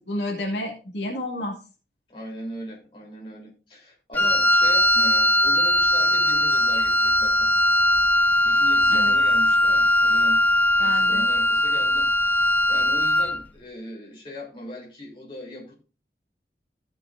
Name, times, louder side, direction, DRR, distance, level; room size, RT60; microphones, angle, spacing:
voice 1, 0.1-1.6 8.9-9.1 10.8-11.3, left 1 dB, 85° left, 2.4 m, -30 dB
voice 2, 2.1-7.5 8.4-10.4 10.8-15.7, equal, 30° left, 3.6 m, -39 dB
Wind instrument woodwind instrument, 4.1-13.4, left 1 dB, 10° left, 0.5 m, -20 dB
15.5 x 6.5 x 2.6 m
head